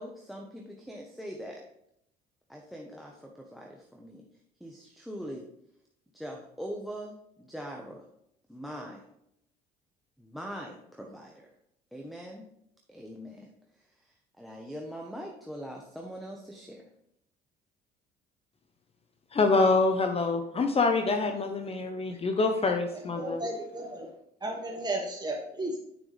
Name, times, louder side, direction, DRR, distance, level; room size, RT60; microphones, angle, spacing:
voice 1, 0.0-1.6 2.5-4.2 4.6-5.5 6.1-8.1 8.5-9.0 10.2-11.5 11.9-12.5 12.9-13.5 13.7-16.9, equal, ahead, 1 dB, 1.2 m, -42 dB
voice 2, 19.3-23.4, left 3 dB, 35° left, 6 dB, 1.0 m, -26 dB
voice 3, 23.2-24.1 24.4-25.9, right 1 dB, 20° right, -2 dB, 2.7 m, -34 dB
9.0 x 6.0 x 3.4 m, 0.76 s
supercardioid pair, 80°, 18 cm